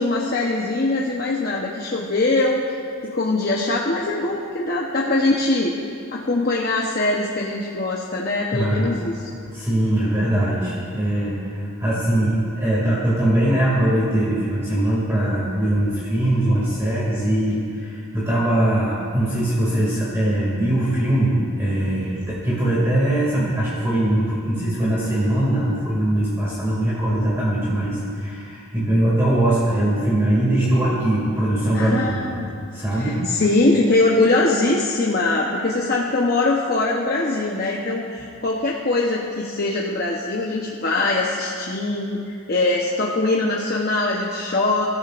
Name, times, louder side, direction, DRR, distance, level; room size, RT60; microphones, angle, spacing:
voice 1, 0.0-2.6 3.0-5.7 6.1-9.3 31.7-32.5 32.9-44.9, left 2 dB, 45° left, -3 dB, 0.9 m, -22 dB
voice 2, 8.5-8.9 9.5-32.3 32.7-33.2, right 1 dB, 15° right, -8 dB, 2.3 m, -21 dB
24.5 x 13.0 x 2.5 m, 2.5 s
head